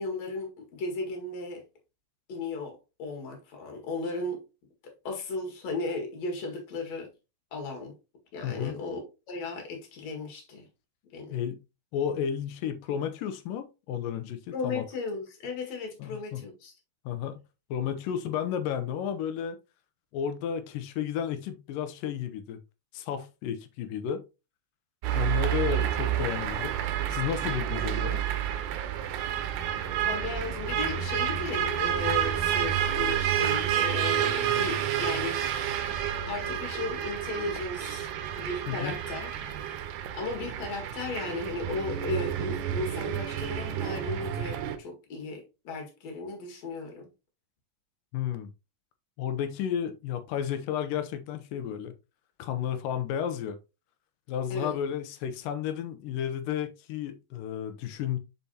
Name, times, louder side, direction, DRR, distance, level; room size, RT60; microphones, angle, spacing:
voice 1, 0.0-1.6 2.3-4.4 5.0-7.1 7.5-7.9 8.3-10.7 11.1-11.4 14.5-16.7 29.0-29.1 30.0-35.8 36.3-38.1 38.4-39.3 40.1-47.1 54.5-54.8, left 3 dB, 55° left, 2.9 m, -35 dB
voice 2, 8.4-8.8 11.3-11.6 11.9-14.8 16.0-16.4 17.1-17.4 17.7-19.6 20.1-22.6 22.9-24.2 25.1-26.8 27.1-28.2 38.7-39.0 48.1-48.5 49.2-51.9 52.4-53.6 54.3-58.2, left 9 dB, 80° left, 2.5 m, -32 dB
sound 1, 25.0-44.8, right 10 dB, 75° right, 2.3 m, -30 dB
sound 2, 30.6-39.5, right 6 dB, 10° left, 0.7 m, -42 dB
7.1 x 5.8 x 2.8 m
omnidirectional pair, 3.9 m